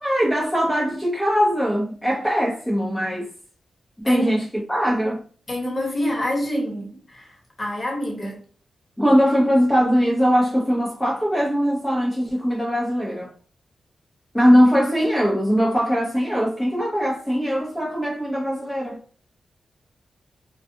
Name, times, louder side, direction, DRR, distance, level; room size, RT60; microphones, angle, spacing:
voice 1, 0.0-3.3 4.0-5.2 9.0-13.3 14.3-19.0, equal, 5° left, 0.7 m, -21 dB
voice 2, 4.0-4.4 5.5-7.3 7.6-8.4, equal, 30° left, 1.1 m, -26 dB
2.4 x 2.3 x 2.6 m
cardioid pair, 75°, 0 cm